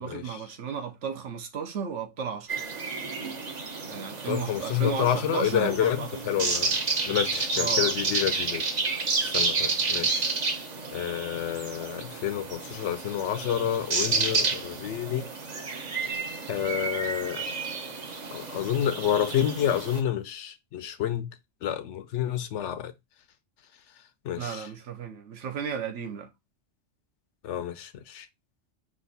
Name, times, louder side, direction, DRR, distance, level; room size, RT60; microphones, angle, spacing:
voice 1, 0.0-2.6 3.9-6.7 7.6-7.9 24.4-26.3, right 6 dB, 70° right, 1.1 m, -34 dB
sound 1, 2.5-20.0, right 4 dB, 40° right, 0.8 m, -30 dB
voice 2, 4.3-6.7 7.1-8.6 9.0-10.3 10.9-15.3 16.5-17.4 18.3-21.3 21.6-22.9 24.2-24.6 27.4-28.3, left 10 dB, 70° left, 0.9 m, -29 dB
5.3 x 2.5 x 3.9 m
omnidirectional pair, 1.3 m